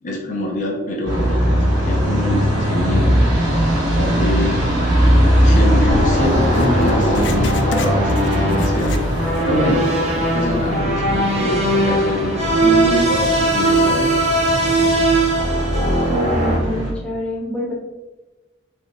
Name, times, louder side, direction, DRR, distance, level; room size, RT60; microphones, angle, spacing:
voice 1, 0.0-3.6 4.0-4.6 5.1-9.9 10.2-12.3 12.6-14.2, equal, 40° left, -1 dB, 0.7 m, -25 dB
sound 1, 1.1-16.9, equal, 85° right, 1.4 m, -20 dB
sound 2, 5.9-16.6, right 1 dB, 35° right, 0.9 m, -20 dB
Writing, 6.5-9.5 9.8-9.9 10.6-10.7, left 3 dB, 70° left, 0.4 m, -31 dB
voice 2, 16.1-17.7, left 1 dB, 5° left, -5 dB, 0.6 m, -26 dB
3.7 x 3.3 x 2.7 m, 1.2 s
head